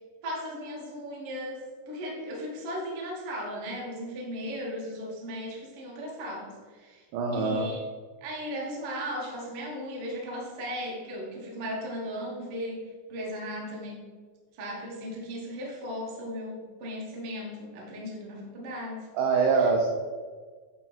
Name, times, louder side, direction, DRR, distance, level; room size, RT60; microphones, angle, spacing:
voice 1, 0.2-7.1 7.3-7.8 8.2-14.0 14.6-19.1 19.5-19.7, equal, 55° right, -3 dB, 1.6 m, -36 dB
voice 2, 7.1-7.7 19.1-19.9, right 4 dB, 85° right, 1 dB, 2.1 m, -24 dB
10.5 x 3.7 x 4.2 m, 1.6 s
omnidirectional pair, 5.0 m